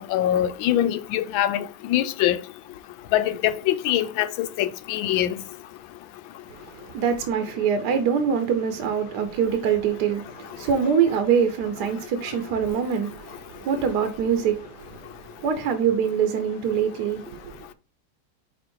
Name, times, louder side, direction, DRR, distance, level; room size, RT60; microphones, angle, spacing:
voice 1, 0.0-2.4 3.1-5.3, left 12 dB, 90° left, 1.4 m, -23 dB
voice 2, 6.5-17.7, right 7 dB, 65° right, 1.2 m, -24 dB
5.3 x 4.1 x 4.4 m
omnidirectional pair, 2.1 m